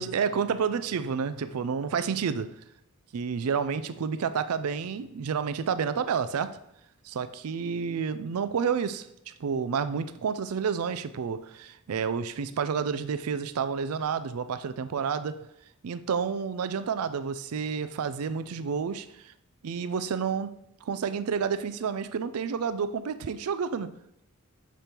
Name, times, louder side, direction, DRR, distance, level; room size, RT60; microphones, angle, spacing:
voice 1, 0.0-2.5 3.1-6.6 7.0-15.4 15.8-19.3 19.6-20.5 20.8-24.0, right 6 dB, 80° right, 13 dB, 0.4 m, -30 dB
6.1 x 5.1 x 4.4 m, 0.81 s
head